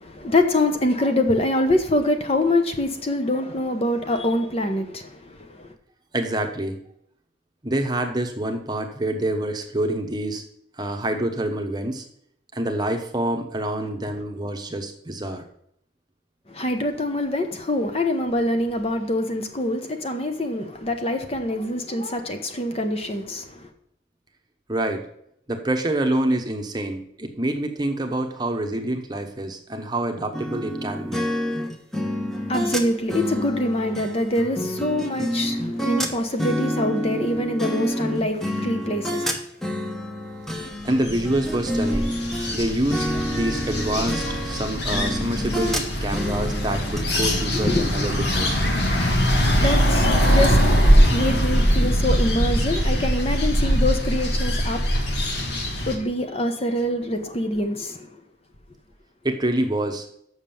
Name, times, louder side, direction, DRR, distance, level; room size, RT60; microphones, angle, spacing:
voice 1, 0.0-5.1 16.5-23.4 32.5-39.2 47.5-47.8 48.7-54.9 55.7-58.0, left 1 dB, 35° left, 0.9 m, -25 dB
voice 2, 6.1-6.8 7.6-10.4 10.8-12.0 12.5-15.4 24.7-25.1 25.5-31.2 40.8-42.1 42.5-43.1 43.3-48.5 59.2-60.1, right 1 dB, 25° right, 0.9 m, -26 dB
sound 1, 30.3-42.6 42.9-47.0, equal, ahead, 0.9 m, -28 dB
sound 2, 40.7-56.0, equal, 65° left, 1.7 m, -22 dB
7.4 x 6.4 x 7.0 m
head